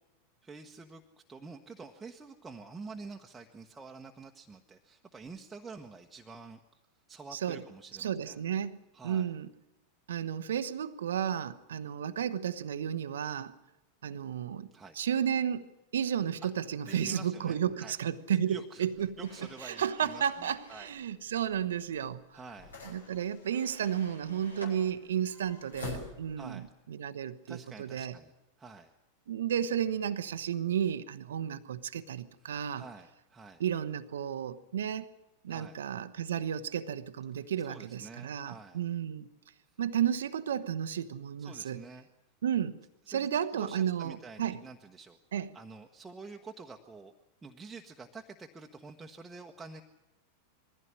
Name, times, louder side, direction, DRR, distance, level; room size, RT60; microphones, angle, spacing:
voice 1, 0.4-1.0 1.3-6.6 7.1-8.4 8.9-9.3 14.7-14.9 16.4-16.5 16.9-18.0 18.5-18.9 19.2-20.9 22.3-22.8 26.4-26.7 27.5-28.3 28.6-28.9 32.4-33.6 35.5-35.8 37.6-38.8 41.4-42.1 43.1-45.2 45.5-47.1 47.4-49.8, right 4 dB, 10° right, 1.2 m, -48 dB
voice 2, 7.3-7.6 8.0-8.8 9.0-9.5 10.1-13.5 14.0-14.7 14.9-19.2 19.6-22.2 22.8-28.2 29.3-32.8 33.6-35.1 35.4-39.3 39.8-41.8 42.4-42.7 43.1-44.6 45.3-45.5, right 9 dB, 65° right, 0.9 m, -33 dB
sound 1, 18.9-26.6, left 3 dB, 70° left, 5.6 m, -49 dB
sound 2, 19.2-21.0 23.4-24.8, equal, 90° left, 4.8 m, -51 dB
21.5 x 15.5 x 9.9 m
figure-of-eight pair, 90°, 0 cm